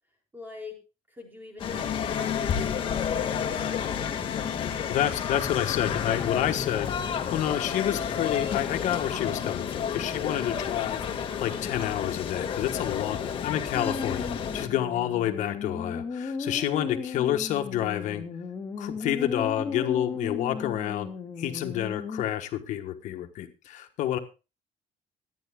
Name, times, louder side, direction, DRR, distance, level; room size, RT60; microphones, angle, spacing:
voice 1, 0.3-0.8 1.1-5.1 13.1-13.5 14.7-14.8 16.6-16.8, left 2 dB, 15° right, 0 dB, 4.4 m, -46 dB
sound 1, 1.6-14.7, left 7 dB, 45° left, 1.7 m, -30 dB
voice 2, 4.9-18.2 18.8-21.1 21.4-24.2, left 11 dB, 80° left, 6 dB, 1.3 m, -29 dB
sound 2, 13.7-22.2, left 4 dB, 25° left, 1.8 m, -36 dB
25.0 x 9.6 x 2.3 m, 0.30 s
cardioid pair, 150°, 13 cm